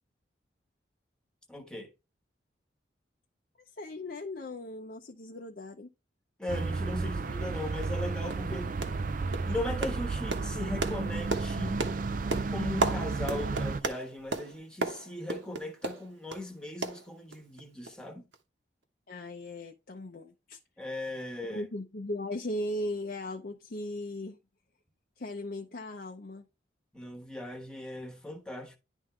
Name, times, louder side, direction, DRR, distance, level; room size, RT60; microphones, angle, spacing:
voice 1, 1.5-1.9 6.4-8.8 9.4-11.8 12.5-18.3 20.8-21.6 26.9-28.8, left 1 dB, 5° left, 1.2 m, -38 dB
voice 2, 3.8-5.9 19.1-20.6 21.4-24.4 25.2-26.4, left 1 dB, 50° left, 0.7 m, -38 dB
sound 1, 6.5-13.8, right 3 dB, 45° right, 0.4 m, -32 dB
sound 2, 7.3-7.4 7.8-8.0 8.3-8.5 8.8-9.1 9.3-16.5 16.8-17.6 17.9-18.0 18.3-18.4, right 3 dB, 75° right, 1.1 m, -35 dB
11.0 x 3.6 x 3.2 m
head